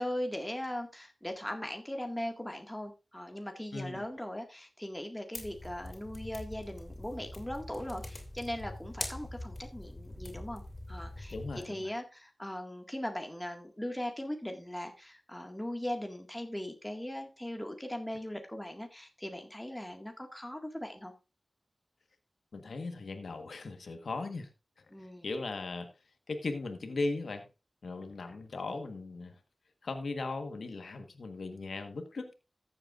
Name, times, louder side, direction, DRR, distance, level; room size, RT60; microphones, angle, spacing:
voice 1, 0.0-10.6 10.9-21.1 24.9-25.3, left 1 dB, 10° left, 1.9 m, -39 dB
voice 2, 3.7-4.0 11.3-11.9 22.5-24.5 24.8-24.9 25.2-25.9 26.3-27.4 27.8-29.4 29.8-32.3, left 3 dB, 90° left, 1.3 m, -38 dB
sound 1, 5.3-11.6, left 1 dB, 50° left, 3.1 m, -43 dB
14.0 x 7.9 x 2.5 m
cardioid pair, 40°, 0 cm